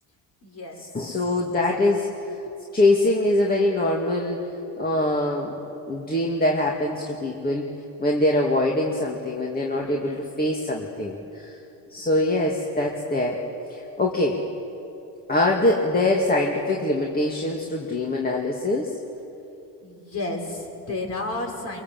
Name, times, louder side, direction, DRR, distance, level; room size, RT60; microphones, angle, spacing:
voice 1, 0.4-0.8 2.4-2.6 19.8-21.8, left 2 dB, 40° left, 1 dB, 5.3 m, -32 dB
voice 2, 0.9-2.1 2.7-4.4 4.8-5.5 5.9-7.7 8.0-11.6 11.9-13.4 13.7-14.4 15.3-18.9, left 1 dB, 20° left, -1 dB, 2.4 m, -23 dB
23.5 x 23.0 x 7.7 m, 2.8 s
cardioid pair, 110°, 41 cm